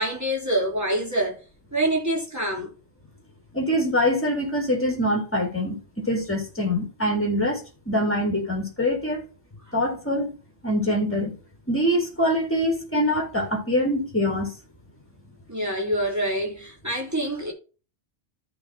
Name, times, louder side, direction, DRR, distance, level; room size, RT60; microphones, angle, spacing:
voice 1, 0.0-1.4 1.7-2.7 9.6-9.8 15.5-17.5, right 1 dB, 15° right, 3.3 m, -26 dB
voice 2, 3.5-9.2 9.7-10.3 10.6-11.3 11.7-14.5, equal, 10° left, 3.2 m, -24 dB
14.0 x 5.6 x 2.8 m
omnidirectional pair, 1.2 m